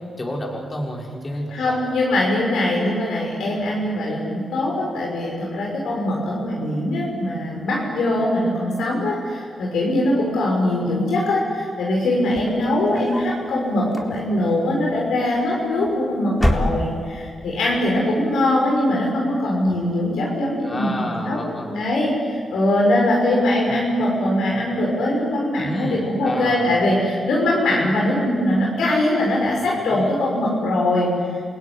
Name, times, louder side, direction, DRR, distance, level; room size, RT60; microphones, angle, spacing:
voice 1, 0.2-2.0 20.6-21.7 25.6-26.8 29.9-30.0, left 1 dB, 35° left, -1 dB, 5.6 m, -30 dB
voice 2, 1.5-31.1, left 1 dB, 85° left, -3 dB, 6.2 m, -22 dB
sound 1, 12.2-13.4 13.8-14.5 15.5-16.0 16.3-17.2, left 1 dB, 15° left, 4.1 m, -26 dB
28.5 x 16.5 x 9.9 m, 2.1 s
supercardioid pair, 50°, 0 cm